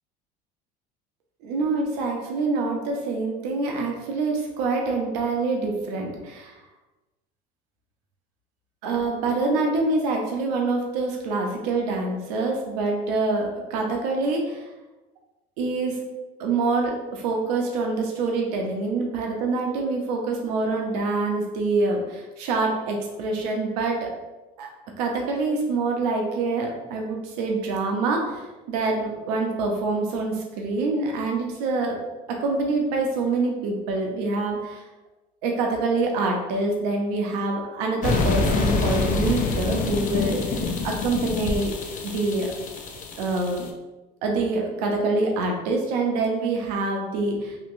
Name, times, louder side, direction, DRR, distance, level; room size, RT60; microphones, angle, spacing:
voice 1, 1.4-6.5 8.8-14.7 15.6-16.0 16.4-24.1 24.6-24.7 25.0-32.0 32.3-34.8 35.4-42.5 43.2-43.7 44.2-47.6, right 3 dB, 80° right, 1 dB, 0.7 m, -26 dB
sound 1, 38.0-43.7, left 3 dB, 40° left, 0.5 m, -26 dB
2.9 x 2.8 x 2.6 m, 1.1 s
supercardioid pair, 85°, 20 cm